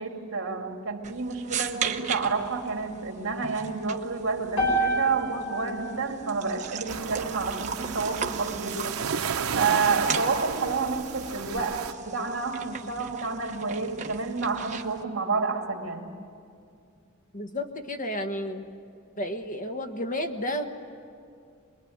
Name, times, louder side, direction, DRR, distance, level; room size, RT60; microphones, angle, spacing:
voice 1, 0.0-9.0 9.5-16.1, right 4 dB, 60° right, 2 dB, 2.6 m, -29 dB
sound 1, 1.0-15.0, right 7 dB, 35° right, 1.1 m, -38 dB
sound 2, 4.6-8.7, right 1 dB, 75° left, 5.7 m, -32 dB
sound 3, 6.9-11.9, right 6 dB, 80° right, 0.7 m, -33 dB
voice 2, 17.3-18.7 19.2-20.7, left 1 dB, 40° left, 6 dB, 1.3 m, -31 dB
26.0 x 21.5 x 9.4 m, 2.4 s
head